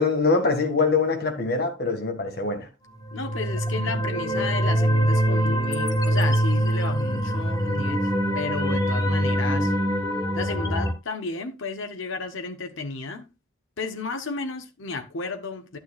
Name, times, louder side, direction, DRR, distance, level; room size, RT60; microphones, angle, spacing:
voice 1, 0.0-2.7, left 4 dB, 50° left, 1.7 m, -23 dB
sound 1, 3.0-10.9, equal, 20° left, 1.0 m, -24 dB
voice 2, 3.1-9.7 10.3-13.3 13.8-15.8, left 3 dB, 70° left, 1.0 m, -33 dB
11.0 x 9.2 x 2.4 m
head